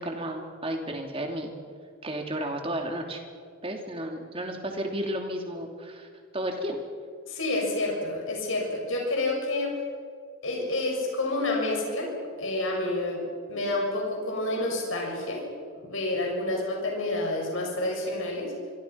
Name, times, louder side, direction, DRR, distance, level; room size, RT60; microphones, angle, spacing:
voice 1, 0.0-1.5 2.0-3.2 3.6-6.1 6.3-6.8, right 1 dB, 25° right, 3 dB, 3.0 m, -32 dB
voice 2, 7.3-9.7 10.4-12.1 12.4-13.2 13.5-15.4 15.7-18.5, left 2 dB, 65° left, -1 dB, 6.8 m, -29 dB
26.5 x 24.5 x 5.9 m, 2.1 s
head